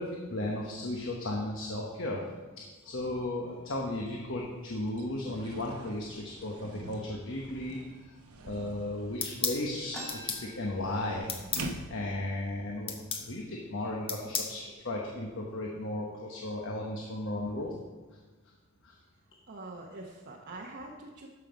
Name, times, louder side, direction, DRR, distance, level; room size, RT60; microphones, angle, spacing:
voice 1, 0.0-2.2 2.8-8.1 8.4-11.3 11.9-17.7 18.8-18.9, left 1 dB, 60° left, -1 dB, 1.1 m, -35 dB
sound 1, 3.3-3.5 3.9-12.2, right 2 dB, 90° right, 1.0 m, -46 dB
sound 2, 9.2-9.6 10.1-10.4 11.3-11.7 12.9-13.3 14.1-14.5, left 6 dB, 25° left, 0.9 m, -33 dB
sound 3, 9.9-11.5 11.9-12.0 12.2-12.8 13.4-13.6 14.3-14.5 14.9-15.4, equal, 5° left, 1.5 m, -46 dB
voice 2, 19.5-21.3, right 2 dB, 50° right, -2 dB, 0.9 m, -44 dB
12.5 x 5.6 x 5.2 m, 1.3 s
head